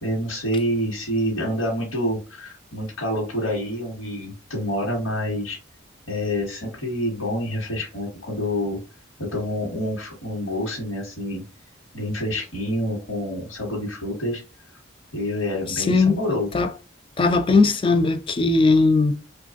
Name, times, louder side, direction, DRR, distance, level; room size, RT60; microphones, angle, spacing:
voice 1, 0.0-5.6 6.1-8.8 9.2-11.4 11.9-14.4 15.1-16.5, equal, 75° left, 1.1 m, -27 dB
voice 2, 15.7-16.2 16.5-16.7 17.2-19.1, left 3 dB, 25° left, 0.3 m, -18 dB
3.1 x 2.3 x 2.4 m
head